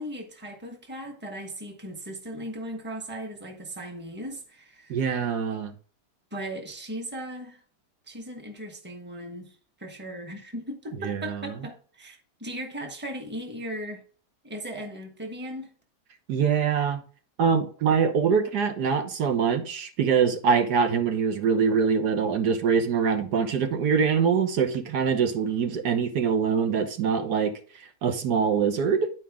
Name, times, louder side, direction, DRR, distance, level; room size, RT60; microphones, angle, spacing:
voice 1, 0.0-5.1 6.3-7.6 8.1-14.0 14.4-15.7, right 1 dB, 5° right, 1.2 m, -37 dB
voice 2, 4.9-5.7 11.0-11.4 16.3-17.0 17.4-29.1, right 6 dB, 75° right, 1.6 m, -24 dB
10.5 x 4.7 x 3.6 m
omnidirectional pair, 1.8 m